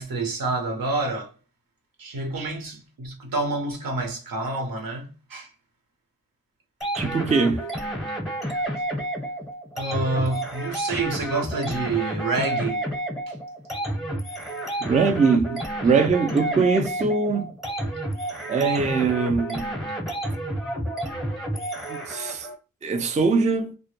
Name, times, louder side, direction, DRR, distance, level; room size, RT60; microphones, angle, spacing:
voice 1, 0.0-1.3 2.0-5.5 8.8-8.9 9.7-12.9 13.3-13.4, right 2 dB, 85° right, 0.8 m, -28 dB
sound 1, 6.8-22.5, right 1 dB, ahead, 0.7 m, -30 dB
voice 2, 7.0-7.7 14.8-17.5 18.5-19.7 21.9-22.5 22.8-23.7, right 4 dB, 20° right, 0.3 m, -22 dB
2.1 x 2.1 x 2.9 m
wide cardioid pair, 115°, 34 cm